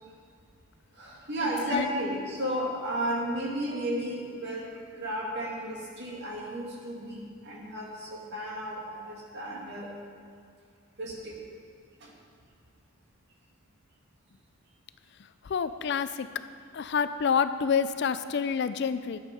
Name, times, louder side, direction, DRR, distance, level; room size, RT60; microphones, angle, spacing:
voice 1, 1.0-9.9 11.0-11.4 12.0-12.1, equal, 50° right, -3 dB, 2.3 m, -33 dB
voice 2, 15.2-16.3 16.7-19.2, left 6 dB, 50° left, 12 dB, 0.4 m, -28 dB
11.5 x 8.4 x 5.3 m, 2.4 s
head